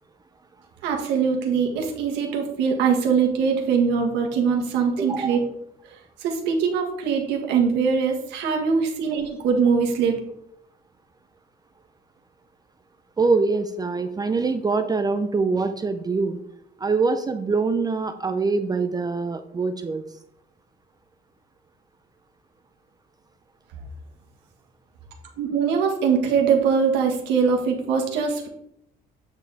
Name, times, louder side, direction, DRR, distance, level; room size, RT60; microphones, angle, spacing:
voice 1, 0.8-5.4 6.2-10.2 25.4-28.5, right 6 dB, 90° right, 2 dB, 1.5 m, -22 dB
voice 2, 5.0-5.4 13.2-16.4 16.8-20.0, right 4 dB, 25° right, 8 dB, 0.5 m, -24 dB
8.2 x 5.2 x 4.1 m, 0.75 s
cardioid pair, 110°, 17 cm